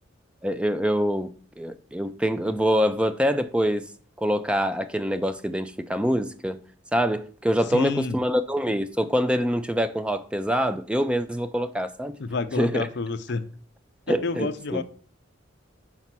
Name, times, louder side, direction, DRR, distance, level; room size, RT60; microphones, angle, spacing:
voice 1, 0.4-3.8 4.2-6.6 6.9-12.1 12.6-12.9 14.1-14.8, equal, 5° right, 0.4 m, -25 dB
voice 2, 7.7-8.2 12.2-13.5 14.1-14.8, left 4 dB, 60° left, 0.5 m, -29 dB
5.5 x 4.1 x 5.9 m
head